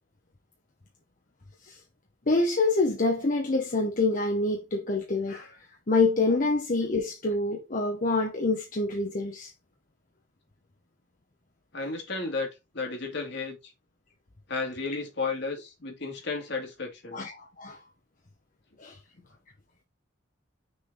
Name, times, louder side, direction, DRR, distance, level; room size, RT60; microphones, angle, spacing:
voice 1, 2.3-5.6 5.9-9.5 17.1-17.8 18.8-19.0, left 3 dB, 40° left, 0.9 m, -26 dB
voice 2, 11.7-12.5 12.7-13.6 14.5-17.2, left 3 dB, 60° left, 2.2 m, -33 dB
6.4 x 4.0 x 3.9 m
head